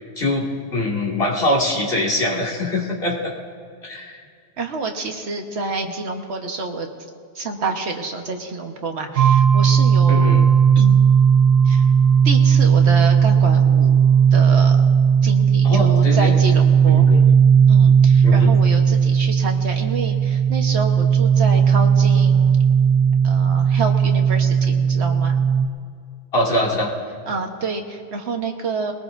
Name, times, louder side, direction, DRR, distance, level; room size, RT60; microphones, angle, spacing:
voice 1, 0.7-3.3 3.8-4.2 10.1-10.4 15.6-16.3 16.8-17.3 18.2-18.5 26.3-26.9, left 1 dB, 60° left, -4 dB, 2.5 m, -22 dB
voice 2, 4.6-6.9 7.3-10.3 10.7-11.0 11.6-11.8 12.2-13.9 14.3-14.8 15.2-17.1 17.7-22.6 23.2-25.3 27.3-28.9, right 3 dB, 80° right, 3 dB, 1.5 m, -28 dB
sound 1, 9.2-25.7, right 7 dB, 60° right, 0.9 m, -15 dB
21.5 x 19.0 x 2.6 m, 2.1 s
omnidirectional pair, 1.1 m